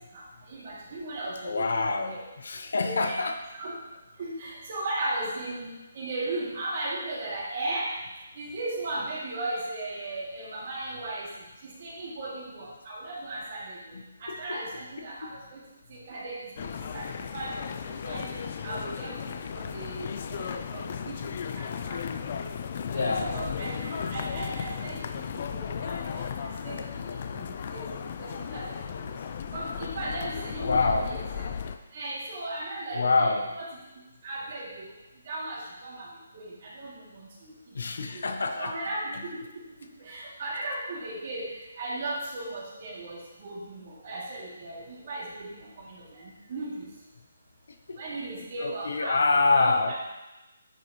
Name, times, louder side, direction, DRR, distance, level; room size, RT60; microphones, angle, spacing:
voice 1, 0.1-2.2 2.8-3.2 3.6-3.7 4.2-7.9 8.3-11.3 11.6-13.9 14.2-15.6 15.9-18.3 18.6-22.0 22.2-22.3 22.9-23.8 24.1-29.1 29.5-31.4 31.9-33.6 34.2-34.9 35.2-36.1 36.3-37.5 38.0-38.2 38.5-39.4 40.0-41.4 41.8-46.9 48.0-49.2 49.5-49.9, right 2 dB, 40° right, -6 dB, 2.7 m, -37 dB
voice 2, 1.4-3.4 13.9-14.0 14.3-14.6 15.0-15.3 18.3-18.5 22.9-23.3 30.6-31.1 32.9-33.5 37.7-38.8 47.9-48.0 48.6-49.9, left 3 dB, 75° left, 6 dB, 0.9 m, -26 dB
sound 1, 16.6-31.8, left 7 dB, 40° left, 0.5 m, -35 dB
9.4 x 6.4 x 3.2 m, 1.0 s
hypercardioid pair, 165°, 0 cm